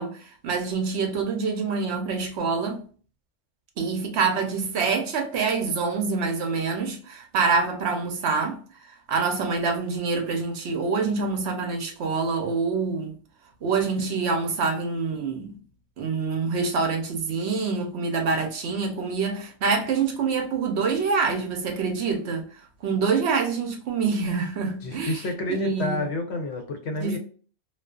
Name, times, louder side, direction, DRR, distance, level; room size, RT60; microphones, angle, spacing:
voice 1, 0.0-2.8 3.8-8.6 9.1-13.1 13.6-15.6 16.0-22.5 22.8-25.2 25.5-26.0 27.0-27.2, right 4 dB, 70° right, 0.9 m, -26 dB
voice 2, 24.8-27.2, left 1 dB, 70° left, 0.9 m, -29 dB
2.4 x 2.4 x 2.3 m
omnidirectional pair, 1.2 m